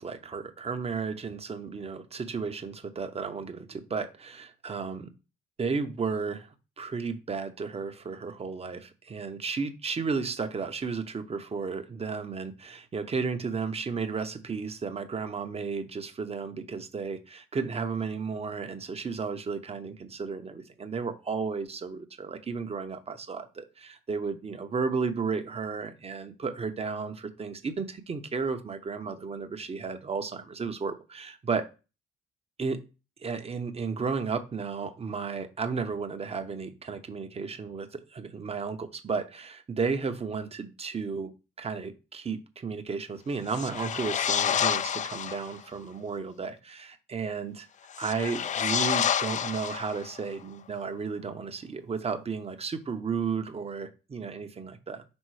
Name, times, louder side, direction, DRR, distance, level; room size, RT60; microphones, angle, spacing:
voice 1, 0.0-5.1 5.6-6.5 6.8-31.6 32.6-32.8 33.2-41.3 41.6-47.7 48.0-55.0, right 5 dB, 30° right, 0.9 m, -33 dB
sound 1, 43.5-45.5 47.9-50.2, left 8 dB, 40° left, 0.4 m, -29 dB
5.4 x 3.7 x 4.8 m
cardioid pair, 90°, 20 cm